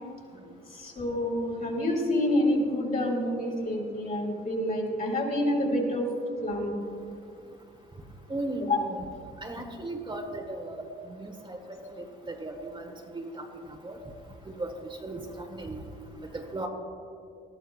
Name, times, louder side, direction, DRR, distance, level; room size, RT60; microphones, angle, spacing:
voice 1, 0.7-6.1 6.4-6.7 8.6-8.8, left 1 dB, 45° left, -1 dB, 3.6 m, -28 dB
voice 2, 8.3-9.0 9.4-12.9 13.1-13.4 13.8-14.0 14.6-14.7 15.0-15.8 16.3-16.7, right 2 dB, 25° right, 2 dB, 1.5 m, -36 dB
19.5 x 13.5 x 2.4 m, 2.4 s
cardioid pair, 90°, 20 cm